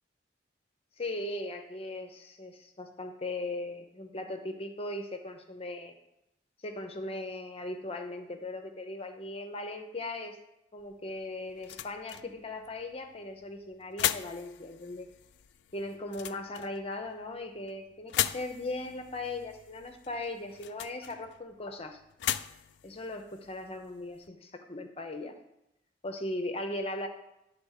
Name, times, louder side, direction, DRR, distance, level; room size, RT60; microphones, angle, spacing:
voice 1, 1.0-5.9 6.6-10.4 10.7-15.1 15.7-22.0 22.8-25.3 26.0-27.1, left 2 dB, 35° left, 6 dB, 0.7 m, -38 dB
sound 1, 10.8-24.3, left 11 dB, 70° left, 0.3 m, -39 dB
10.5 x 3.8 x 6.5 m, 0.87 s
head